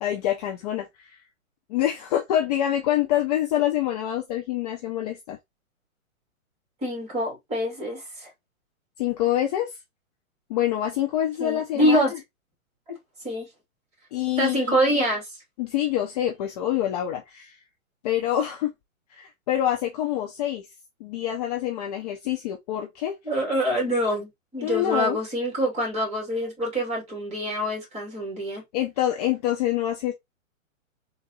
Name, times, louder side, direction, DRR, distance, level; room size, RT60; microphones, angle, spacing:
voice 1, 0.0-1.2 1.7-5.4 9.0-9.7 10.5-12.0 14.1-14.8 15.6-17.6 18.0-18.7 19.1-20.6 21.0-23.1 24.6-25.2 28.7-30.1, left 12 dB, 30° left, 0.7 m, -26 dB
voice 2, 6.8-8.3 11.4-12.1 13.2-13.5 14.4-15.3 23.2-28.6, equal, 15° right, 2.4 m, -25 dB
3.8 x 2.7 x 3.8 m
hypercardioid pair, 145°, 41 cm